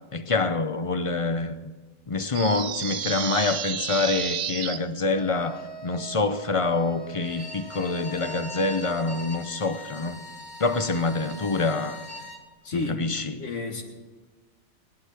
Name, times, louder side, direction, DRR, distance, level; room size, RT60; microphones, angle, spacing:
voice 1, 0.1-1.5 2.1-10.2 10.6-12.0 12.7-13.4, left 3 dB, 35° left, 0.6 m, -26 dB
sound 1, 2.3-4.8, right 8 dB, 75° right, 1.1 m, -31 dB
sound 2, 5.1-8.8, right 5 dB, 55° right, 1.4 m, -43 dB
Bowed string instrument, 7.1-12.4, left 1 dB, 10° right, 1.4 m, -41 dB
voice 2, 12.6-13.1 13.4-13.8, left 3 dB, 75° left, 2.1 m, -31 dB
18.5 x 11.5 x 4.4 m
omnidirectional pair, 1.3 m